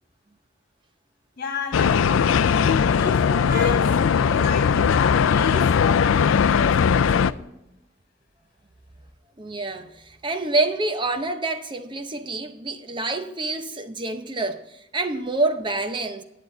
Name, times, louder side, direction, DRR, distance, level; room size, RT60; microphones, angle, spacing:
voice 1, 1.4-2.5 2.8-7.5, left 4 dB, 50° left, 1.8 m, -33 dB
sound 1, 1.7-7.3, left 6 dB, 80° left, 0.4 m, -19 dB
voice 2, 9.4-16.2, right 2 dB, 25° right, 0.7 m, -27 dB
10.5 x 8.3 x 4.3 m
head